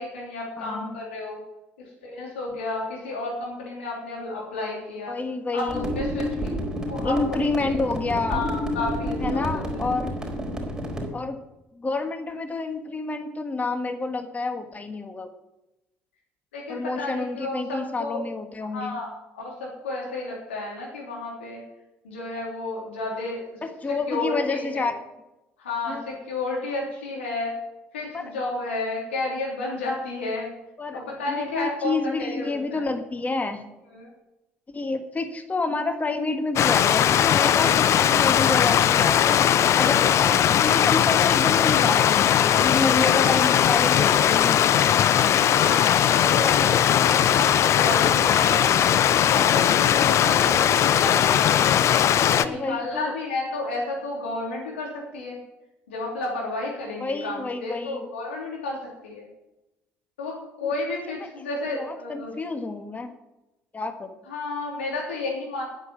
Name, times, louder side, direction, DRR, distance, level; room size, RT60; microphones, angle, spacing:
voice 1, 0.0-1.4 2.0-5.2 5.5-6.5 6.9-7.8 8.3-9.8 16.5-18.2 18.7-21.6 22.0-23.4 24.1-24.9 25.6-27.5 27.9-30.5 30.9-32.8 33.9-34.1 43.1-44.0 45.4-48.8 49.2-51.5 52.2-55.4 55.9-58.8 59.0-59.3 60.2-62.3 64.3-65.6, left 2 dB, 80° left, -3 dB, 3.4 m, -32 dB
voice 2, 0.6-0.9 5.1-5.8 7.0-8.4 9.2-10.1 11.1-11.4 11.7-15.3 16.7-19.0 23.6-24.9 25.9-26.0 28.1-28.3 30.8-33.6 34.7-39.4 39.7-45.2 52.3-53.1 57.0-58.0 60.6-60.7 61.1-61.3 61.7-63.1 63.7-64.1, left 3 dB, 25° left, 7 dB, 1.6 m, -29 dB
sound 1, 5.7-11.1, equal, 10° right, 4.6 m, -29 dB
Stream, 36.6-52.5, left 10 dB, 50° left, 0.7 m, -19 dB
10.0 x 9.8 x 7.3 m, 0.97 s
hypercardioid pair, 60°, 6 cm